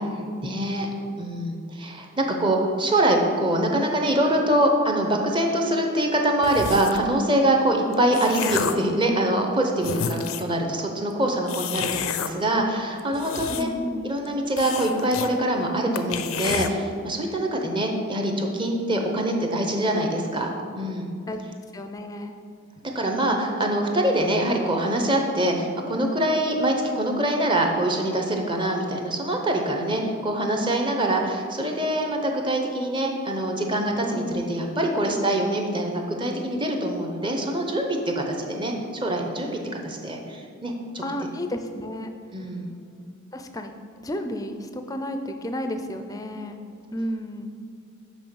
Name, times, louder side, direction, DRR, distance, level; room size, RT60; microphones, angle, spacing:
voice 1, 0.4-0.9 1.2-13.7 14.0-20.5 20.8-21.1 22.9-41.0 42.3-42.7, right 1 dB, 20° right, 2 dB, 0.7 m, -24 dB
sound 1, 6.4-7.1 7.8-8.9 9.5-9.6 9.8-10.6 11.5-12.3 13.0-13.9 14.2-14.3 14.6-15.3 15.6-15.7 16.0-16.7, left 7 dB, 75° left, 0.5 m, -30 dB
voice 2, 13.5-14.2 21.3-21.4 21.7-22.4 34.1-34.4 41.0-42.1 43.3-46.6 46.9-47.5, equal, 15° left, 6 dB, 0.4 m, -32 dB
6.1 x 5.3 x 6.9 m, 2.3 s
head